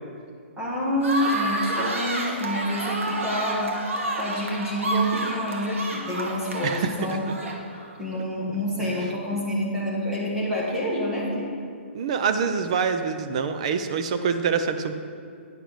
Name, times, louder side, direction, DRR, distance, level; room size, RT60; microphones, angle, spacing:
voice 1, 0.6-3.7 4.2-7.3 7.9-11.5, equal, 5° right, -5 dB, 1.2 m, -27 dB
sound 1, 1.0-7.9, right 2 dB, 85° right, 1.5 m, -30 dB
voice 2, 11.9-14.9, right 6 dB, 30° right, 9 dB, 0.4 m, -25 dB
9.4 x 6.2 x 4.7 m, 2.3 s
hypercardioid pair, 175°, 7 cm